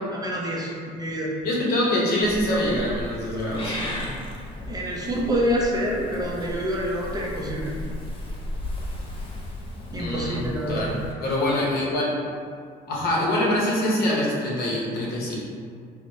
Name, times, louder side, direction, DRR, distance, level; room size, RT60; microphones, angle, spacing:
voice 1, 0.1-1.3 4.7-7.7 9.9-10.9, equal, 25° right, -3 dB, 0.4 m, -27 dB
voice 2, 1.4-4.1 9.9-10.9 11.2-12.1 12.9-15.4, left 1 dB, 65° left, -4 dB, 0.7 m, -24 dB
Purr / Meow, 2.2-11.1, left 1 dB, 30° left, 0.5 m, -35 dB
3.0 x 2.0 x 2.7 m, 2.3 s
cardioid pair, 110°, 17 cm